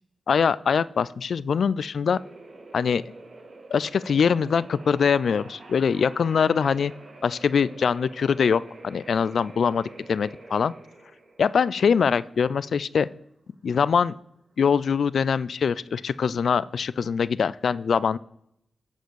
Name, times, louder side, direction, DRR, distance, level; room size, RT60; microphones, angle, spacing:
voice 1, 0.3-2.2 2.7-3.0 3.7-6.9 7.2-10.7 11.4-13.1 13.6-14.2 14.6-18.2, left 6 dB, 70° left, 19 dB, 0.3 m, -23 dB
sound 1, 2.1-16.6, right 2 dB, 45° right, 1.8 m, -47 dB
10.5 x 4.9 x 6.3 m, 0.74 s
wide cardioid pair, 90°, 0 cm